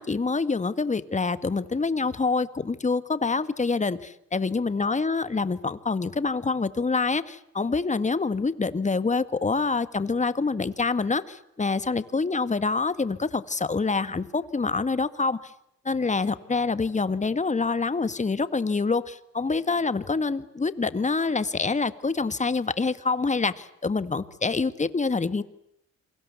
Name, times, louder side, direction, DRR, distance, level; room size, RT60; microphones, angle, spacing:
voice 1, 0.0-15.4 15.9-25.4, left 4 dB, 25° left, 13 dB, 1.8 m, -26 dB
28.0 x 24.0 x 8.3 m, 0.76 s
cardioid pair, 90°, 30 cm